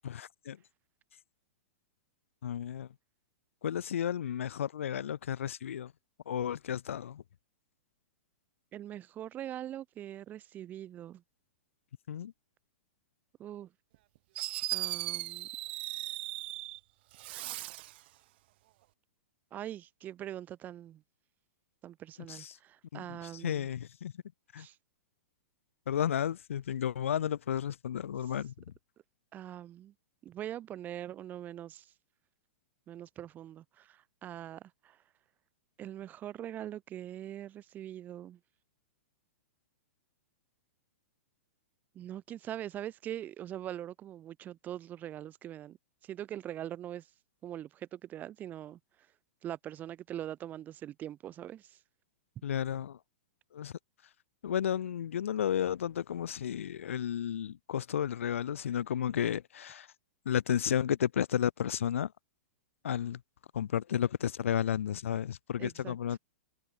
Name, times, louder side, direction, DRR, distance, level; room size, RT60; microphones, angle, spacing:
voice 1, 0.0-0.6 2.4-2.9 3.6-5.9 6.3-7.2 12.1-12.3 22.3-22.6 22.9-24.1 24.5-24.7 25.9-28.5 52.4-53.0 53.5-53.7 54.4-59.9 60.3-62.1 62.8-63.2 63.5-66.2, left 9 dB, 80° left, 5.8 m, -32 dB
voice 2, 8.7-11.2 13.4-13.7 14.7-15.5 19.5-21.0 21.8-23.7 24.6-24.7 29.3-29.9 30.2-31.8 32.9-34.9 35.8-38.4 41.9-45.8 46.1-47.0 47.4-48.8 49.4-51.7 65.6-65.9, right 11 dB, 25° right, 6.4 m, -42 dB
Fireworks, 13.9-14.0 14.3-16.8 17.1-18.0, right 18 dB, 55° right, 1.5 m, -37 dB
hypercardioid pair, 145°, 7 cm